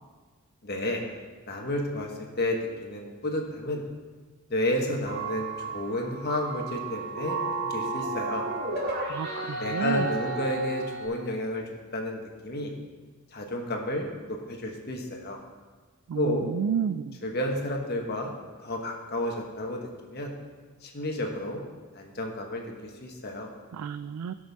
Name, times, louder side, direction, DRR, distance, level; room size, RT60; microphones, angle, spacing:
voice 1, 0.6-1.0 1.5-3.8 4.5-8.4 9.6-11.6 11.9-12.7 13.3-15.4 16.1-16.5 17.2-18.3 18.6-20.3 20.8-21.6 21.9-23.5, left 1 dB, 45° left, 1 dB, 1.3 m, -31 dB
sound 1, 5.1-11.1, right 3 dB, 50° right, 1.8 m, -33 dB
voice 2, 9.1-10.1 16.1-17.2 23.7-24.3, right 7 dB, 90° right, 12 dB, 0.3 m, -31 dB
17.0 x 6.3 x 3.6 m, 1.4 s
head